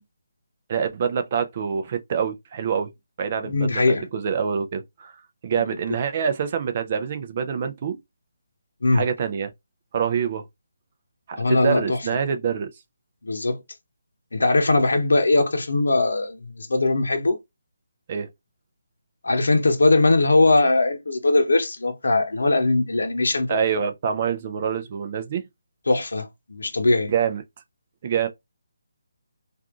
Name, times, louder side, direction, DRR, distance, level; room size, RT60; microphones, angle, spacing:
voice 1, 0.7-2.9 3.2-5.2 5.4-8.0 8.9-9.5 9.9-10.5 11.3-12.7 18.1-18.3 23.5-25.5 27.1-27.4 28.0-28.3, right 7 dB, 40° right, 0.5 m, -26 dB
voice 2, 3.4-4.1 8.8-9.0 11.4-12.0 13.2-13.6 14.3-17.4 19.2-23.6 25.9-27.1, left 2 dB, 70° left, 0.8 m, -20 dB
3.5 x 2.4 x 2.3 m
figure-of-eight pair, 150°, 0 cm